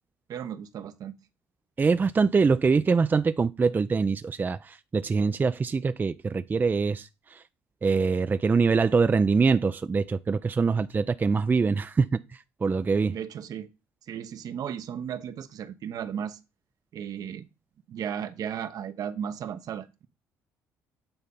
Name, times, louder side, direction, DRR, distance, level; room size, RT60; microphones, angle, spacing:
voice 1, 0.3-1.1 13.1-13.7 14.1-16.4 16.9-17.5 17.9-20.1, right 8 dB, 60° right, 0.9 m, -35 dB
voice 2, 1.8-7.4 7.8-13.2, right 4 dB, 25° right, 0.4 m, -24 dB
9.0 x 4.0 x 5.4 m
supercardioid pair, 75°, 7 cm